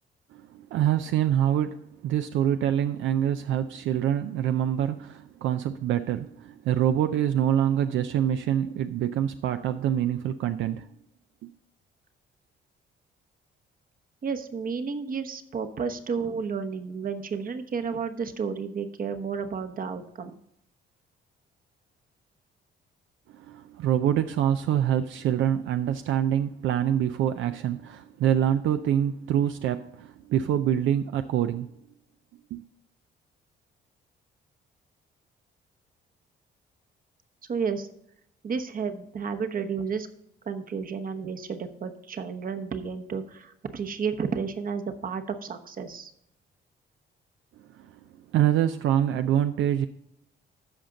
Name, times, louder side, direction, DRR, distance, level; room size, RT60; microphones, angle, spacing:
voice 1, 0.3-10.9 11.4-11.5 23.3-31.7 32.5-32.6 47.7-47.9 48.3-49.9, right 10 dB, 75° right, 0.5 m, -25 dB
voice 2, 14.2-20.3 37.5-37.9 38.4-40.1 40.5-46.1, right 6 dB, 45° right, 1.0 m, -32 dB
13.5 x 5.1 x 3.8 m
cardioid pair, 90°, 20 cm